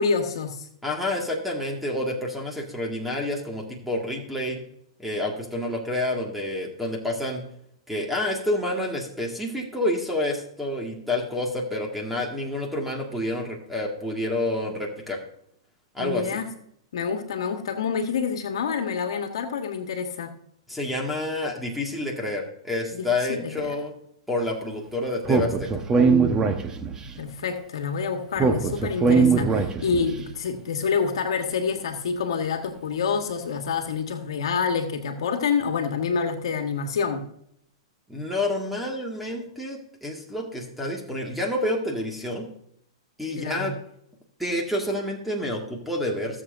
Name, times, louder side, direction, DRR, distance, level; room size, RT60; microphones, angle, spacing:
voice 1, 0.0-0.7 16.0-16.5 16.9-20.3 22.9-23.8 27.2-37.2 43.4-43.7, left 5 dB, 70° left, 6 dB, 1.4 m, -27 dB
voice 2, 0.8-4.6 5.0-7.4 7.9-15.2 15.9-16.4 20.7-23.9 24.3-25.7 38.1-42.5 43.2-43.7 44.4-46.4, left 1 dB, ahead, 0 dB, 1.9 m, -28 dB
Speech, 25.3-27.1 28.4-30.1, right 4 dB, 20° right, 1.1 m, -21 dB
18.0 x 7.2 x 2.6 m, 0.71 s
hypercardioid pair, 120°, 3 cm